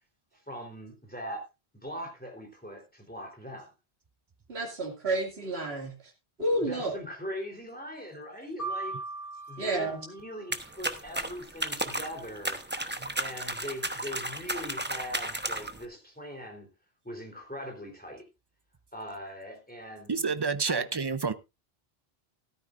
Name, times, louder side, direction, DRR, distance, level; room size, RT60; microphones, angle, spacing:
voice 1, 0.5-1.5 1.8-3.7 6.6-9.0 9.5-12.8 13.2-16.7 17.0-18.3 18.9-20.2 20.7-20.8, equal, 10° left, 3.6 m, -41 dB
voice 2, 4.5-5.9 6.4-6.9 9.6-10.0, right 2 dB, 70° right, 2.7 m, -30 dB
sound 1, 8.6-10.7, right 3 dB, 55° left, 7.9 m, -39 dB
sound 2, 10.5-15.8, right 1 dB, 10° right, 0.9 m, -34 dB
voice 3, 20.1-21.3, right 5 dB, 30° right, 0.6 m, -28 dB
13.5 x 13.5 x 2.5 m
omnidirectional pair, 1.1 m